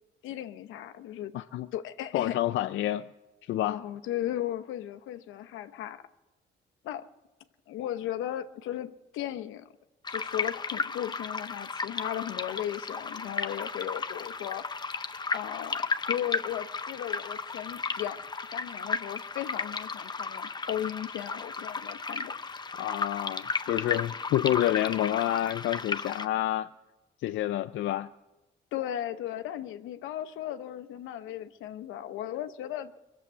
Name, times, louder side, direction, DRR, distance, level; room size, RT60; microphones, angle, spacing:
voice 1, 0.2-1.3 1.7-2.4 3.6-6.0 6.8-7.1 7.7-9.7 10.1-14.6 15.3-18.2 18.5-22.3 28.7-33.1, left 12 dB, 90° left, 0.8 m, -36 dB
voice 2, 1.3-1.7 2.1-3.1 3.5-3.8 22.8-26.7 27.2-28.1, left 13 dB, 75° left, 0.4 m, -28 dB
sound 1, 10.0-26.3, left 4 dB, 20° left, 0.6 m, -34 dB
22.0 x 7.4 x 8.2 m
cardioid pair, 90°, 20 cm